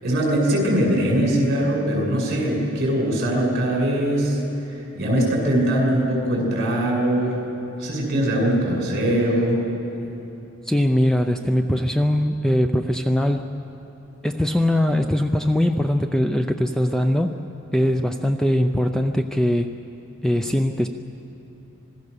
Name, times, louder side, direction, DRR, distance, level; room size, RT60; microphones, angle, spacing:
voice 1, 0.0-7.4 7.8-9.7, right 1 dB, 50° right, -1 dB, 6.9 m, -21 dB
voice 2, 10.7-13.5 14.2-17.4 17.7-19.7 20.2-20.9, left 1 dB, 5° left, 6 dB, 0.5 m, -21 dB
26.5 x 20.0 x 6.8 m, 2.9 s
head